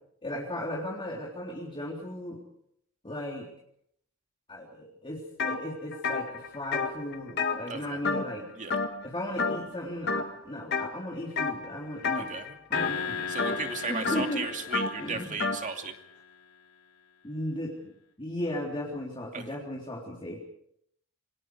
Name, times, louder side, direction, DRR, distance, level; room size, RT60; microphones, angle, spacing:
voice 1, 0.2-2.4 3.0-3.5 4.5-8.5 9.0-12.3 12.7-13.3 13.9-14.4 15.0-15.3 17.2-20.4, left 1 dB, 25° left, -2 dB, 3.7 m, -36 dB
sound 1, 5.4-5.6 5.9-8.4 8.7-9.1 9.4-9.8 10.1-10.9 11.4-11.7 12.0-15.6, left 4 dB, 50° left, 2.0 m, -30 dB
voice 2, 7.7-8.0 8.6-8.8 12.1-12.6 13.3-15.9 19.3-19.4, right 4 dB, 35° right, 5 dB, 2.7 m, -35 dB
sound 2, 12.7-16.2, left 6 dB, 90° left, 4.8 m, -37 dB
28.0 x 24.5 x 4.9 m, 0.71 s
head